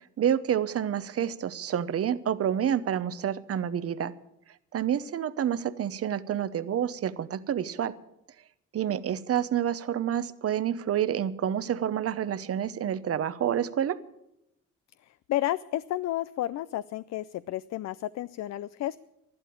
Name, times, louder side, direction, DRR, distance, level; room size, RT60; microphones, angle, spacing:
voice 1, 0.2-4.1 4.7-7.9 8.7-14.0, right 9 dB, 50° right, 14 dB, 0.9 m, -28 dB
voice 2, 15.0-19.0, left 14 dB, 60° left, 17 dB, 0.5 m, -32 dB
12.0 x 12.0 x 8.6 m, 0.83 s
cardioid pair, 90°, 30 cm